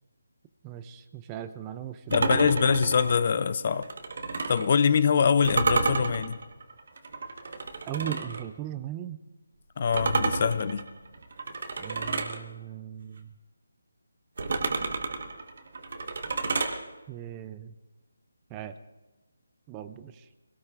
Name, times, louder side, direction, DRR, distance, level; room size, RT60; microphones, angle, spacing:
voice 1, 0.6-2.4 7.9-9.2 11.8-13.3 17.1-17.7 18.5-18.7 19.7-20.3, right 11 dB, 15° right, 12 dB, 0.4 m, -38 dB
voice 2, 2.1-3.9 4.5-6.4 9.8-10.9, left 6 dB, 40° left, 15 dB, 0.5 m, -24 dB
sound 1, 2.1-4.7 5.4-8.4 9.9-12.4 14.4-16.8, right 3 dB, 55° right, 1.3 m, -30 dB
24.0 x 17.5 x 2.5 m, 1.2 s
figure-of-eight pair, 170°, 0 cm